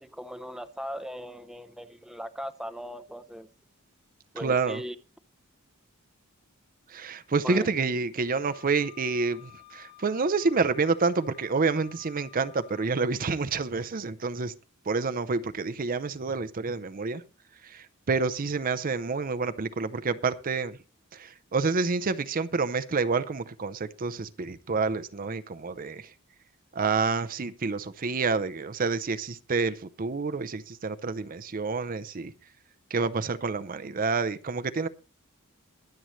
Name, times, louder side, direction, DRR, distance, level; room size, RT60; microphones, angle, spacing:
voice 1, 0.0-3.5 4.3-5.0 7.4-7.7, equal, ahead, 0.7 m, -38 dB
voice 2, 4.4-4.8 6.9-14.5 14.9-17.2 17.6-20.8 21.1-26.1 26.7-32.3 32.9-34.9, right 4 dB, 40° right, 0.6 m, -28 dB
Wind instrument woodwind instrument, 8.4-12.9, left 16 dB, 45° left, 3.3 m, -53 dB
22.5 x 7.8 x 3.1 m
head